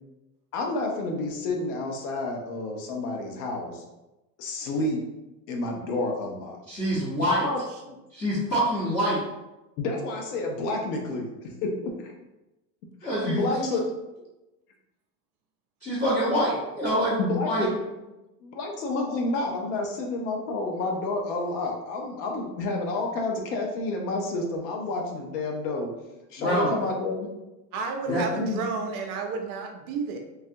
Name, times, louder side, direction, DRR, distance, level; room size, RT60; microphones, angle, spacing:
voice 1, 0.5-3.8 4.4-5.0 5.5-6.6 7.4-7.6 7.8-8.0 9.8-11.7 12.0-12.1 13.0-13.8 17.2-17.7 18.4-25.9 26.3-27.3 28.1-28.6, left 2 dB, 75° left, 2 dB, 0.7 m, -29 dB
voice 2, 6.7-7.4 8.1-9.2 13.0-13.7 15.8-17.2 17.4-17.7 26.4-26.7 28.1-28.2, equal, 20° left, -10 dB, 0.9 m, -25 dB
voice 3, 27.7-30.2, right 5 dB, 45° right, 4 dB, 0.6 m, -31 dB
3.3 x 2.3 x 2.7 m, 1.0 s
supercardioid pair, 120°, 46 cm